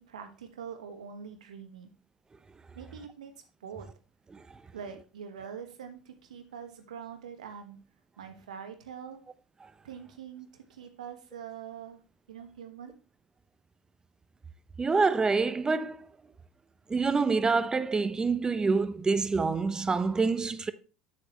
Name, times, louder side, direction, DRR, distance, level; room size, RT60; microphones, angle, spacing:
voice 1, 0.0-1.9 2.7-3.3 3.6-3.9 4.7-7.8 8.2-9.2 9.8-12.0 12.3-12.9, right 7 dB, 80° right, 1.4 m, -44 dB
voice 2, 14.8-16.1 16.9-20.7, right 4 dB, 20° right, 0.8 m, -26 dB
8.7 x 7.7 x 3.1 m
hypercardioid pair, 70°, 4 cm